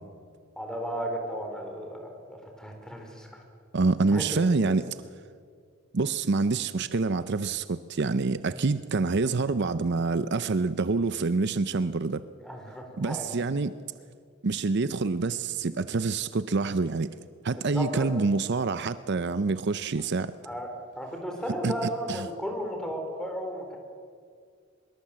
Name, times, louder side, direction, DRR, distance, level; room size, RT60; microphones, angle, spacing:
voice 1, 0.6-3.4 4.1-4.2 4.6-4.7 12.4-13.3 17.6-18.1 20.4-20.7 21.0-23.8, equal, 5° left, 2 dB, 4.2 m, -34 dB
voice 2, 3.7-5.0 5.9-12.2 13.0-13.7 14.4-17.1 17.4-20.3 21.6-21.7 22.1-22.3, right 3 dB, 60° right, 14 dB, 0.6 m, -26 dB
23.5 x 22.0 x 7.7 m, 2.2 s
head